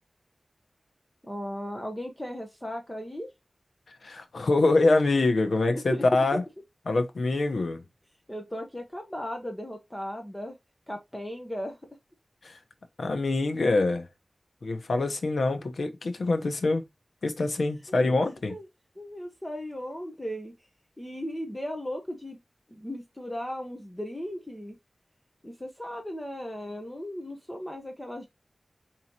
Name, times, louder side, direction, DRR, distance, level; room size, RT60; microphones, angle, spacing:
voice 1, 1.2-3.3 5.7-6.0 8.3-10.5 10.9-11.8 17.9-18.0 18.5-18.6 19.0-20.5 21.0-22.4 22.7-24.8 25.4-28.3, equal, 15° left, 0.8 m, -36 dB
voice 2, 4.0-6.4 6.9-7.8 12.4-12.6 13.0-14.1 14.6-16.8 17.2-18.6, left 2 dB, 90° left, 0.8 m, -25 dB
4.9 x 2.9 x 2.8 m
wide cardioid pair, 90°, 0 cm